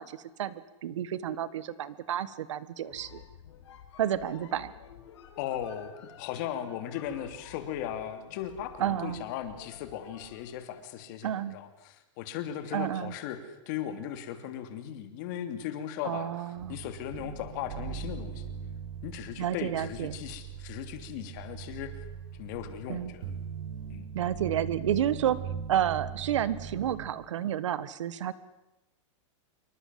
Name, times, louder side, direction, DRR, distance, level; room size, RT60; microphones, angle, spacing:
voice 1, 0.0-3.2 4.0-4.7 8.8-9.2 11.2-11.6 12.7-13.1 16.0-16.8 19.4-20.2 22.9-23.1 24.1-28.3, right 10 dB, 70° right, 16 dB, 1.7 m, -31 dB
sound 1, 2.8-10.6, left 8 dB, 65° left, 5.0 m, -51 dB
voice 2, 5.4-13.4 13.7-16.3 16.7-18.4 19.0-22.0 22.3-23.3 23.9-24.1, left 10 dB, 35° left, 8 dB, 2.9 m, -37 dB
sound 2, 16.6-27.1, right 7 dB, 40° right, 4.6 m, -40 dB
27.0 x 24.5 x 7.7 m, 1.0 s
supercardioid pair, 170°, 16 cm